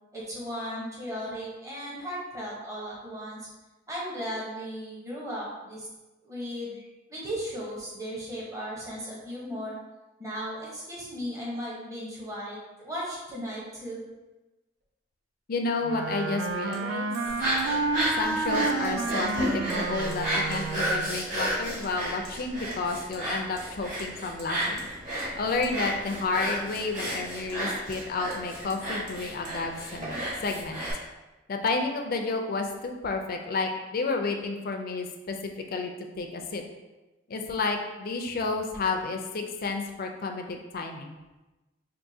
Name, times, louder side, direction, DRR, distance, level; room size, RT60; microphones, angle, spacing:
voice 1, 0.1-3.5 3.9-5.9 6.2-9.8 10.2-14.0, equal, 15° right, -6 dB, 0.8 m, -36 dB
Hammer, 14.8-14.9 16.7-16.8 17.1-17.3 17.6-17.7 18.0-18.1 18.4-19.0 19.3-19.8 20.1-20.2 20.5-20.6 21.8-21.9 22.2-22.4 22.7-23.2 23.6-23.7 24.0-24.1 24.4-24.9 25.2-25.3 25.6-25.7 26.7-27.6 27.9-28.0 28.3-28.4 28.7-28.8 29.1-29.2 29.4-29.6, right 2 dB, 60° right, 0.9 m, -51 dB
voice 2, 15.5-17.1 18.2-24.9 25.4-30.8 31.5-35.4 35.7-36.6 37.3-41.1, left 3 dB, 50° left, 4 dB, 0.4 m, -31 dB
Wind instrument woodwind instrument, 15.8-21.2, right 3 dB, 90° right, 0.3 m, -30 dB
sound 1, 17.3-30.9, right 1 dB, 45° right, 1.4 m, -32 dB
4.6 x 2.6 x 2.7 m, 1.1 s
head